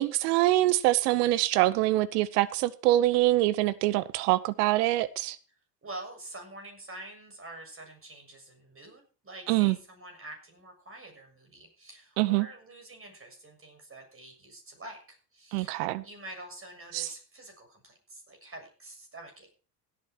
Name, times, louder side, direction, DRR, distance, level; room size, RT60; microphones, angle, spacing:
voice 1, 0.0-5.4 9.5-9.8 12.2-12.5 15.5-16.0 16.9-17.1, right 16 dB, 75° right, 0.8 m, -24 dB
voice 2, 5.8-19.6, right 2 dB, 25° right, 6.9 m, -46 dB
17.0 x 9.0 x 4.5 m
hypercardioid pair, 65°, 47 cm